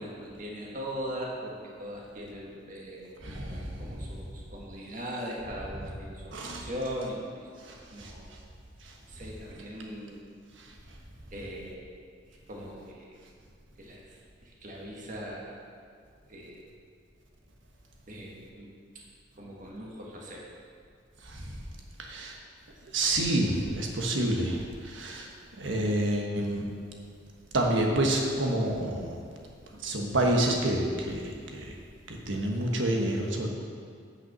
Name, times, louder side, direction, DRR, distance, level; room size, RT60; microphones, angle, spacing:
voice 1, 0.0-8.2 9.1-10.2 11.3-11.9 12.3-13.2 13.8-15.6 16.3-16.6 18.1-18.7 19.4-20.5, equal, 45° right, -3 dB, 1.5 m, -40 dB
voice 2, 3.2-4.0 6.3-6.7 7.6-8.1 8.8-8.9 10.6-10.7 21.2-21.6 22.0-22.4 22.9-25.3 25.6-26.7 27.5-29.2 29.8-31.7 32.1-33.5, right 1 dB, 85° right, 1 dB, 1.3 m, -29 dB
9.0 x 5.7 x 6.0 m, 2.2 s
head